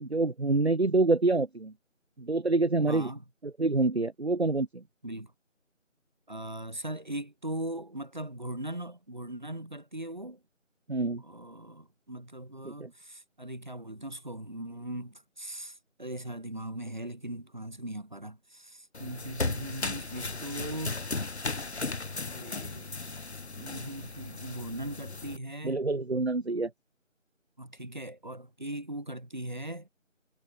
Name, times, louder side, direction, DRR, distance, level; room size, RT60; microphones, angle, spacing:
voice 1, 0.0-1.7 2.2-3.1 3.4-4.8 10.9-11.2 12.6-12.9 25.6-26.7, right 3 dB, 55° right, 1.0 m, -27 dB
voice 2, 2.9-3.2 5.0-5.3 6.3-10.4 11.2-21.0 22.3-23.0 23.6-25.8 27.6-29.9, right 1 dB, 35° right, 2.0 m, -39 dB
sound 1, 18.9-25.4, left 3 dB, 55° left, 0.8 m, -36 dB
figure-of-eight pair, 180°, 39 cm